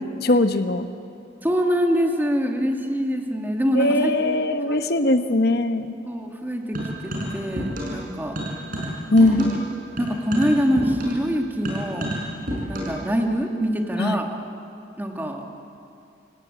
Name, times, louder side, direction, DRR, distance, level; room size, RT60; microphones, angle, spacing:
voice 1, 0.2-0.8 3.7-5.9 9.1-9.6 14.0-14.2, left 2 dB, 60° left, 9 dB, 1.1 m, -20 dB
voice 2, 1.4-4.1 6.1-8.4 9.4-9.5 10.0-12.1 12.7-14.3 15.0-15.5, equal, 10° right, 2 dB, 2.1 m, -24 dB
sound 1, 6.7-8.1 8.3-13.1, equal, 50° right, 5.8 m, -30 dB
27.5 x 17.5 x 8.8 m, 2.6 s
head